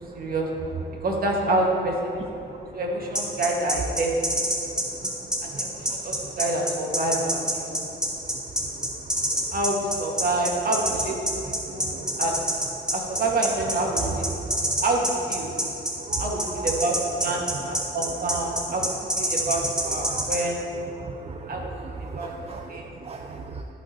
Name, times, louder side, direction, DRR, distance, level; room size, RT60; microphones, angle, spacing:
voice 1, 0.1-0.5 1.0-2.1 2.7-4.1 5.4-7.8 9.5-11.1 11.4-12.3 12.9-14.2 14.8-15.5 16.2-18.9 19.2-20.6 21.5-21.7 22.1-22.3 22.7-22.9, right 2 dB, 50° right, -1 dB, 1.6 m, -27 dB
sound 1, 3.1-20.4, equal, 5° right, 1.8 m, -26 dB
voice 2, 11.7-12.2 14.5-14.7 15.5-15.6 16.1-16.2 16.6-16.7 20.0-20.3 21.0-21.5 22.0-23.6, right 4 dB, 30° right, 3 dB, 0.4 m, -37 dB
14.0 x 5.7 x 2.9 m, 2.9 s
cardioid pair, 90°, 20 cm